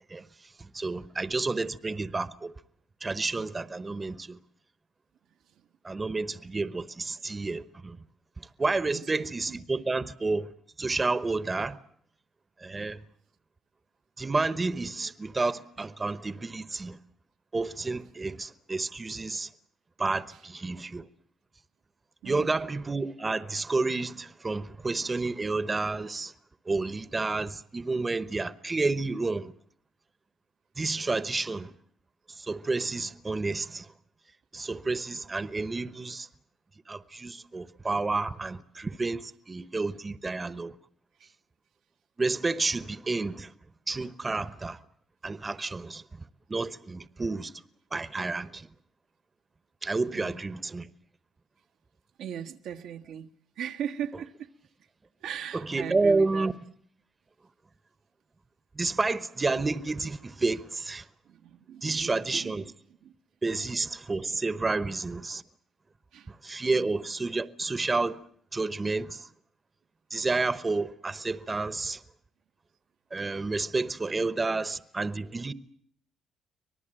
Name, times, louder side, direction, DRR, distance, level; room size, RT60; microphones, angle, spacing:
voice 1, 0.6-2.5 3.0-4.4 5.8-8.0 8.4-10.5 10.8-11.8 12.6-13.0 14.2-17.0 17.5-19.5 20.0-21.0 22.2-26.3 26.7-29.5 30.8-31.7 32.3-33.9 34.5-36.3 36.9-40.8 42.2-43.5 43.9-44.8 45.2-46.0 46.5-47.5 47.9-48.7 49.8-50.9 55.5-56.5 58.7-61.1 61.8-62.6 63.4-65.4 66.3-68.2 68.5-69.3 70.1-72.0 73.1-75.5, right 3 dB, 25° right, 1.0 m, -30 dB
voice 2, 8.9-9.6 22.2-22.6 41.2-41.3 50.1-50.5 52.2-53.3 53.6-54.3 55.2-56.5 61.3-62.7 63.0-63.1 63.5-63.7 66.1-66.3 66.7-66.9, right 9 dB, 85° right, 1.3 m, -39 dB
25.0 x 19.0 x 8.9 m
cardioid pair, 90°, 0 cm